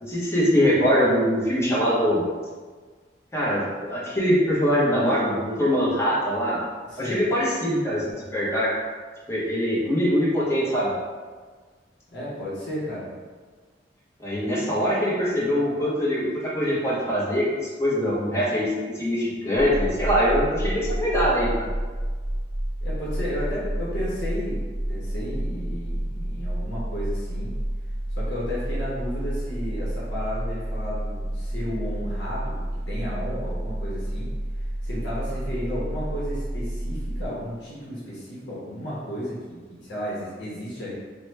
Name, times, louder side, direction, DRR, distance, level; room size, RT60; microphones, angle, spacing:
voice 1, 0.0-2.2 3.3-6.6 7.0-8.0 8.3-8.7 9.3-10.9 14.2-16.3 16.5-17.5 17.8-21.7, equal, 15° left, -8 dB, 0.8 m, -23 dB
voice 2, 6.8-7.2 12.1-13.1 22.8-24.6 24.9-27.5 28.2-34.3 34.8-40.9, equal, 80° left, -7 dB, 0.8 m, -33 dB
sound 1, 19.6-37.3, right 1 dB, 45° right, 0.6 m, -30 dB
3.0 x 2.1 x 3.2 m, 1.5 s
head